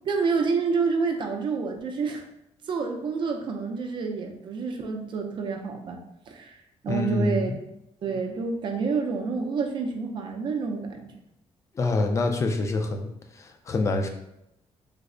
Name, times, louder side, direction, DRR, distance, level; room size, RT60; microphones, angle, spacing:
voice 1, 0.0-2.2 2.7-6.0 6.3-6.6 6.8-7.5 8.0-11.1, right 5 dB, 45° right, 3 dB, 0.5 m, -28 dB
voice 2, 6.9-7.6 11.8-13.1 13.4-14.1, left 2 dB, 25° left, 5 dB, 0.3 m, -26 dB
3.3 x 2.0 x 3.7 m, 0.85 s
cardioid pair, 165°, 11 cm